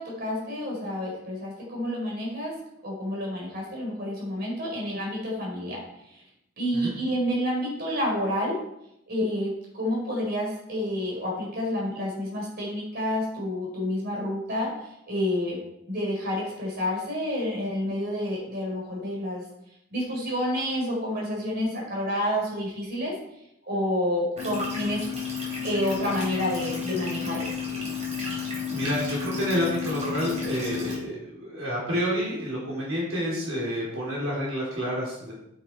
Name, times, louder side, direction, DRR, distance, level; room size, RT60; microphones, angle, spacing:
voice 1, 0.0-5.8 6.1-6.2 6.6-8.6 9.1-15.6 15.9-19.4 19.9-23.1 23.7-25.1 25.6-27.5, left 1 dB, 50° right, -3 dB, 4.5 m, -29 dB
sound 1, 24.4-31.0, left 6 dB, 35° right, 3.7 m, -32 dB
voice 2, 28.2-35.3, equal, 85° right, -5 dB, 3.8 m, -29 dB
8.5 x 8.3 x 4.7 m, 0.82 s
head